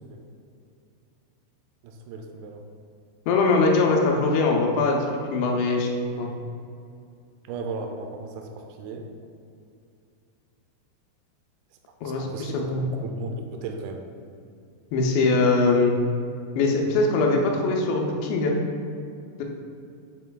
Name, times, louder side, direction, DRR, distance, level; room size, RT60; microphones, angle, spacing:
voice 1, 1.8-2.6 7.5-9.1 12.0-12.6 12.9-14.0, right 4 dB, 85° right, 3 dB, 2.2 m, -36 dB
voice 2, 3.3-5.9 6.2-6.3 12.0-12.9 14.9-15.9 16.6-18.6 19.4-19.5, left 3 dB, 80° left, 0 dB, 2.9 m, -22 dB
8.3 x 6.8 x 2.3 m, 2.4 s
omnidirectional pair, 5.1 m